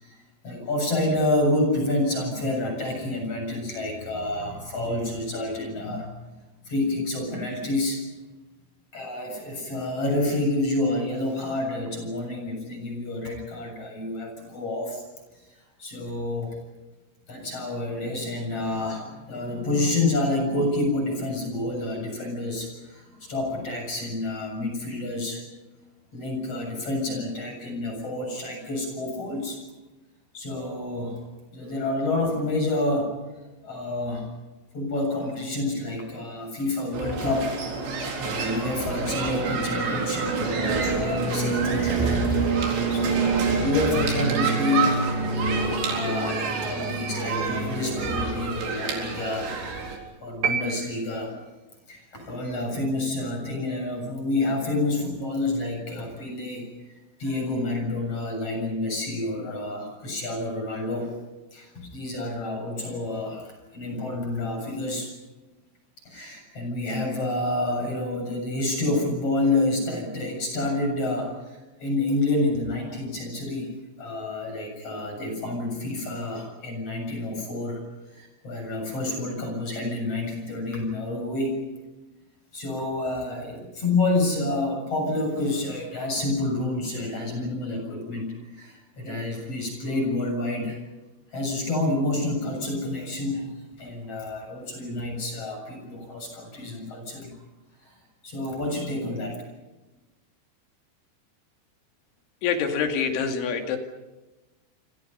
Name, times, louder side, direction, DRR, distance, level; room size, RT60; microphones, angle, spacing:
voice 1, 0.0-6.1 6.7-8.1 8.9-15.0 15.8-16.6 17.3-25.4 26.1-29.6 30.3-31.2 31.5-33.2 33.6-34.3 34.7-37.5 37.8-37.9 38.2-45.1 45.4-49.5 50.2-51.3 51.9-56.7 57.2-61.1 61.5-65.1 66.1-73.7 74.0-77.8 78.1-81.6 82.5-90.8 91.3-97.3 97.8-97.9 98.2-99.4, left 2 dB, 30° left, 3 dB, 8.0 m, -28 dB
sound 1, 36.9-50.0, right 4 dB, 70° right, 6.3 m, -26 dB
sound 2, 50.4-51.7, right 6 dB, 50° right, 1.7 m, -29 dB
voice 2, 102.4-103.8, left 6 dB, 80° left, 5 dB, 4.8 m, -25 dB
29.0 x 26.5 x 5.6 m, 1.1 s
omnidirectional pair, 5.4 m